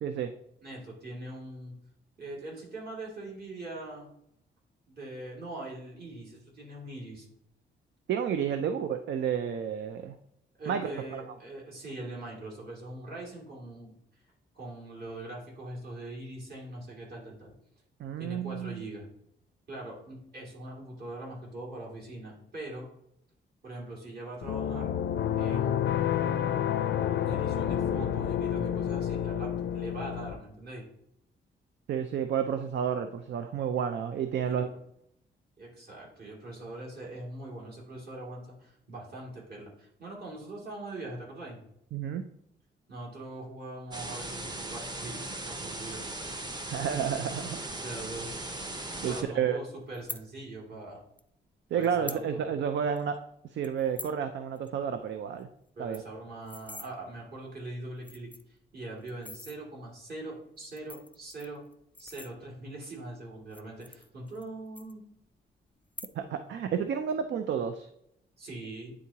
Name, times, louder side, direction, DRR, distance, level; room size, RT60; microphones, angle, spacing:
voice 1, 0.0-0.3 8.1-10.1 10.7-11.2 18.0-18.8 31.9-34.7 41.9-42.2 46.7-47.6 49.0-49.6 51.7-53.2 53.5-55.5 55.8-56.0 66.2-67.9, right 8 dB, 70° right, 8 dB, 0.5 m, -31 dB
voice 2, 0.6-1.7 2.2-4.1 4.9-7.3 10.6-13.9 14.5-17.6 18.2-19.1 19.7-22.9 23.6-24.9 25.4-26.4 27.2-30.9 34.4-34.6 35.6-41.6 42.9-46.0 47.8-48.3 49.0-51.0 51.7-52.4 55.8-58.3 58.7-61.6 62.0-65.0 68.4-68.9, right 2 dB, 55° right, -4 dB, 2.5 m, -42 dB
sound 1, 24.4-30.3, left 9 dB, 70° left, 0.5 m, -29 dB
sound 2, 43.9-49.2, right 2 dB, 20° right, 0.8 m, -38 dB
sound 3, 49.9-50.2 51.2-51.3 51.8-52.2 52.6-52.7 53.0-53.2 53.6-54.2 54.6-54.7 55.0-55.1 55.4-55.5 55.7-56.9 57.6-57.7 58.0-58.6 59.1-59.6 60.6-62.7 63.4-64.5 64.8-65.4 65.8-66.4 66.7-67.1, left 2 dB, 10° left, 0.4 m, -44 dB
9.5 x 3.7 x 2.8 m, 0.76 s
cardioid pair, 110°, 19 cm